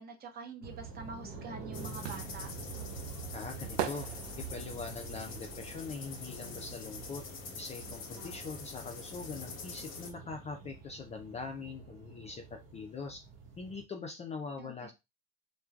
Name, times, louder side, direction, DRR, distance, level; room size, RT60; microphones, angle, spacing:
voice 1, 0.0-2.5 14.6-14.9, right 4 dB, 30° right, 0.8 m, -45 dB
sound 1, 0.6-13.8, right 5 dB, 70° right, 1.0 m, -47 dB
sound 2, 1.2-7.0 7.3-8.9 9.1-9.2, right 10 dB, 90° right, 0.5 m, -41 dB
sound 3, 1.7-10.1, left 5 dB, 40° left, 0.9 m, -46 dB
voice 2, 3.3-4.1 4.4-7.2 7.5-13.2 13.6-14.9, left 4 dB, 20° left, 0.4 m, -42 dB
3.1 x 2.2 x 2.3 m
supercardioid pair, 105°, 31 cm